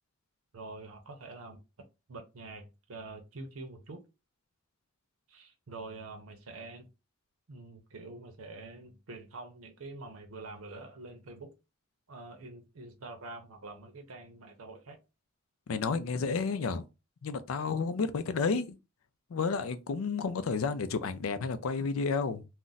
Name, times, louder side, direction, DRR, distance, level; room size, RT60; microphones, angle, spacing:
voice 1, 0.5-1.6 2.1-4.0 5.3-6.9 7.5-11.5 12.1-15.0, right 3 dB, 90° right, 0.7 m, -46 dB
voice 2, 15.7-16.8 17.2-18.8 19.3-22.5, left 4 dB, 80° left, 0.4 m, -31 dB
2.5 x 2.1 x 3.9 m
head